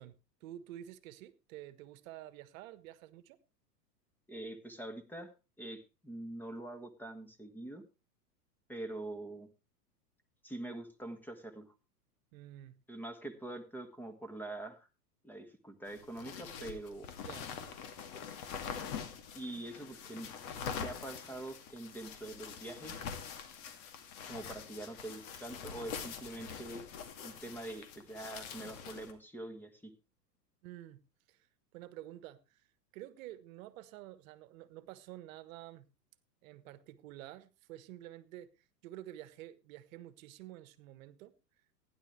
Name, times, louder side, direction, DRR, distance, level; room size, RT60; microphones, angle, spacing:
voice 1, 0.0-3.4 12.3-12.7 17.2-17.5 30.6-31.0 31.3-31.5 31.7-32.6 32.9-35.9 36.4-41.3, right 13 dB, 55° right, 1.4 m, -50 dB
voice 2, 4.3-5.3 5.6-7.8 8.7-9.5 10.4-11.7 12.9-14.9 15.2-17.1 19.3-20.3 20.8-23.0 24.3-26.9 27.2-29.9, right 1 dB, 5° left, 1.8 m, -44 dB
sound 1, 15.9-29.1, left 7 dB, 55° left, 2.5 m, -44 dB
16.0 x 10.5 x 3.3 m
hypercardioid pair, 110°, 49 cm